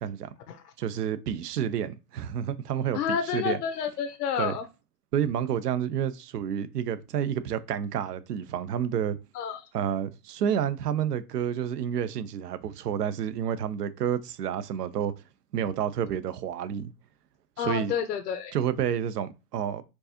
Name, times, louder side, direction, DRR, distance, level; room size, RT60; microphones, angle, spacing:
voice 1, 0.8-3.6 4.4-4.5 5.1-9.2 9.7-15.1 15.5-16.9 17.6-17.9 18.5-19.8, right 9 dB, 85° right, 0.7 m, -29 dB
voice 2, 2.9-4.6 9.3-9.6 17.6-18.5, left 7 dB, 80° left, 0.8 m, -30 dB
4.5 x 2.6 x 2.8 m
hypercardioid pair, 140°, 46 cm